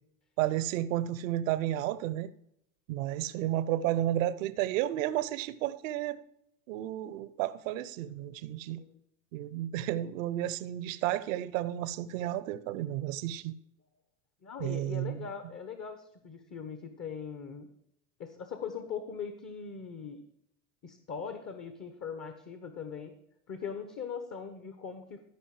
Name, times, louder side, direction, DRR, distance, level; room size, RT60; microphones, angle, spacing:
voice 1, 0.4-2.3 2.9-6.2 6.7-8.8 9.3-13.6 14.6-15.3, right 13 dB, 75° right, 0.7 m, -32 dB
voice 2, 14.4-17.7 18.2-20.2 20.8-23.1 23.5-25.2, left 6 dB, 40° left, 1.2 m, -40 dB
13.5 x 5.3 x 4.9 m
hypercardioid pair, 70°, 39 cm